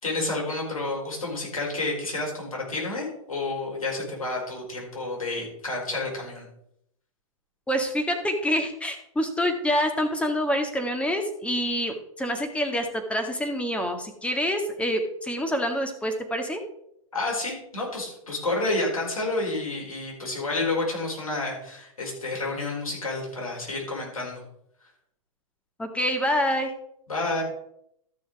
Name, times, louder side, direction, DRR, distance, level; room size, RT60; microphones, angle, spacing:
voice 1, 0.0-6.5 17.1-24.4 27.1-27.4, left 2 dB, 90° left, -2 dB, 5.0 m, -30 dB
voice 2, 7.7-16.6 25.8-26.7, equal, 5° left, 5 dB, 1.8 m, -26 dB
13.0 x 6.3 x 4.7 m, 0.75 s
hypercardioid pair, 115°, 18 cm